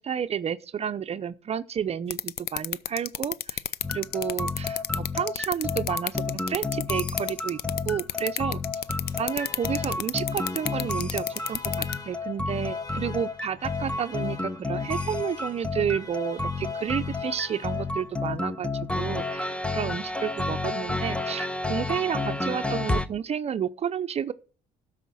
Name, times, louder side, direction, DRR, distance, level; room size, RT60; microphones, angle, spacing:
voice 1, 0.0-3.6 3.9-7.6 7.9-8.6 9.2-18.7 18.9-24.3, right 8 dB, 40° right, 0.6 m, -31 dB
sound 1, 2.1-11.9, left 13 dB, 70° left, 0.6 m, -29 dB
sound 2, 3.8-23.1, left 3 dB, 5° left, 0.7 m, -31 dB
Alarm, 8.8-18.2, left 3 dB, 20° left, 1.4 m, -45 dB
12.5 x 5.0 x 6.2 m
cardioid pair, 110°, 17 cm